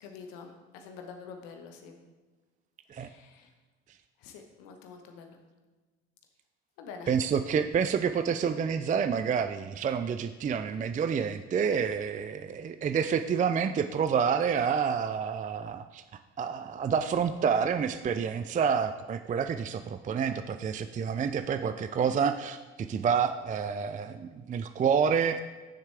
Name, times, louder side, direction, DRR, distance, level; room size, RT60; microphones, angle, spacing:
voice 1, 0.0-2.0 3.0-3.5 4.2-5.4 6.8-7.2, left 5 dB, 70° left, 4 dB, 1.3 m, -46 dB
voice 2, 7.1-16.0 16.4-25.4, right 7 dB, 25° right, 10 dB, 0.4 m, -28 dB
9.4 x 7.2 x 3.4 m, 1.3 s
hypercardioid pair, 60°, 35 cm